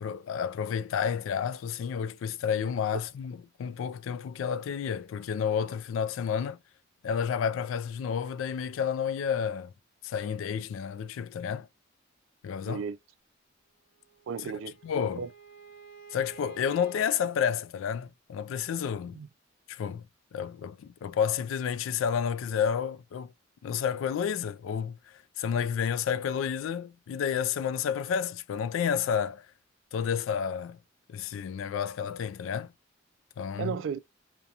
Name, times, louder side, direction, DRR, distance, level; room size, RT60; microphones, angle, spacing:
voice 1, 0.0-6.6 7.0-9.7 10.0-11.7 12.4-12.8 14.8-15.2 16.1-19.2 19.7-20.0 20.3-23.3 23.6-25.0 25.4-29.5 29.9-30.8 31.1-32.7 33.4-33.7, left 7 dB, 85° left, 0.3 m, -30 dB
voice 2, 12.7-13.0 14.3-14.8 15.1-15.3 19.1-19.3 33.6-34.0, right 6 dB, 70° right, 0.3 m, -34 dB
Bowed string instrument, 14.0-17.1, right 6 dB, 60° left, 0.8 m, -50 dB
2.4 x 2.2 x 2.7 m
head